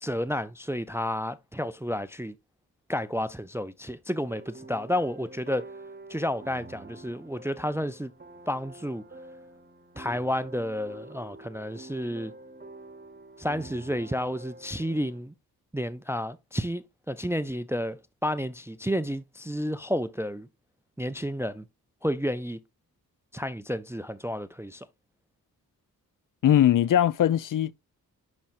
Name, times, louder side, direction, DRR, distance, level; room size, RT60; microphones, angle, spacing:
voice 1, 0.0-2.3 2.9-5.7 6.1-8.1 8.5-9.0 10.0-12.3 13.4-15.3 15.7-20.5 21.0-21.6 22.0-22.6 23.3-24.9, equal, 10° right, 0.3 m, -31 dB
sound 1, 4.2-15.2, right 2 dB, 25° right, 0.9 m, -47 dB
voice 2, 26.4-27.7, left 11 dB, 60° left, 0.4 m, -20 dB
10.5 x 4.2 x 2.5 m
wide cardioid pair, 85°, 37 cm